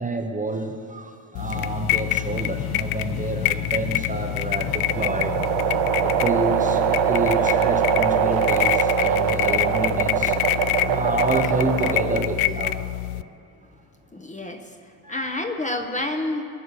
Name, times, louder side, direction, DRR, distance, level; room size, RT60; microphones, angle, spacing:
voice 1, 0.0-5.5 6.0-12.8 15.0-15.3, right 2 dB, 15° right, 4 dB, 0.8 m, -28 dB
sound 1, 1.3-13.2, left 14 dB, 85° left, 0.6 m, -26 dB
sound 2, 1.5-13.3, left 6 dB, 50° left, 1.0 m, -39 dB
sound 3, 4.1-12.4, right 9 dB, 65° right, 1.1 m, -23 dB
voice 2, 14.1-14.6 15.1-16.4, left 2 dB, 15° left, 4 dB, 0.8 m, -28 dB
23.0 x 9.2 x 6.8 m, 2.4 s
cardioid pair, 165°, 49 cm